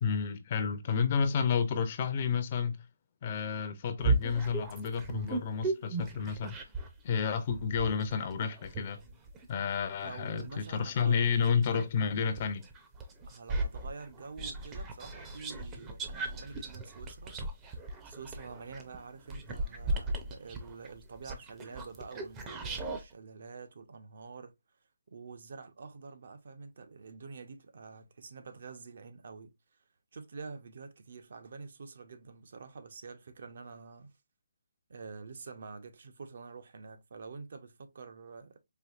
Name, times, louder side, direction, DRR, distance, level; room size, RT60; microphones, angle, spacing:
voice 1, 0.0-2.8 3.2-6.7 7.0-9.0 9.5-12.6, left 6 dB, 35° left, 0.5 m, -30 dB
sound 1, 4.0-7.0 7.5-11.9 12.4-23.0, right 2 dB, 15° right, 0.6 m, -36 dB
voice 2, 10.0-11.3 13.3-17.4 18.0-24.5 25.1-29.5 30.1-34.1 34.9-38.6, right 4 dB, 55° right, 0.7 m, -47 dB
4.5 x 2.6 x 2.4 m
hypercardioid pair, 165°, 0 cm